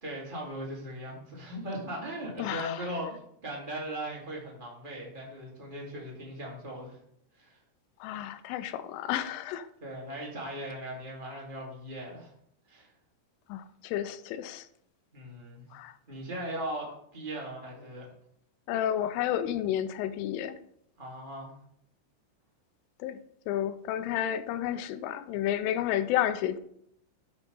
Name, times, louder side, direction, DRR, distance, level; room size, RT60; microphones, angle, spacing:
voice 1, 0.0-7.0 7.4-7.6 9.8-12.3 12.7-12.9 15.1-15.7 16.1-18.0 21.0-21.5, right 1 dB, 35° right, 0.8 m, -38 dB
voice 2, 2.4-2.8 8.0-9.7 13.5-14.7 15.7-15.9 18.7-20.6 23.0-23.2 23.5-26.6, left 11 dB, 85° left, 3.1 m, -31 dB
12.0 x 4.6 x 5.4 m
omnidirectional pair, 5.7 m